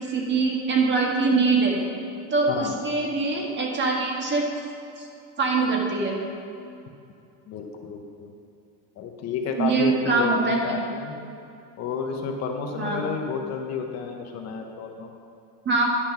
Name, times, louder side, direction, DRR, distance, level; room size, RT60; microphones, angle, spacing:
voice 1, 0.0-1.8 2.3-4.5 5.0-5.1 5.4-6.2 9.6-10.7 12.8-13.0 15.6-15.9, right 3 dB, 30° right, 0 dB, 1.5 m, -23 dB
voice 2, 7.5-8.3 9.0-11.2 11.8-15.1, left 5 dB, 45° left, 3 dB, 1.0 m, -31 dB
10.0 x 5.2 x 5.9 m, 2.5 s
supercardioid pair, 125°, 37 cm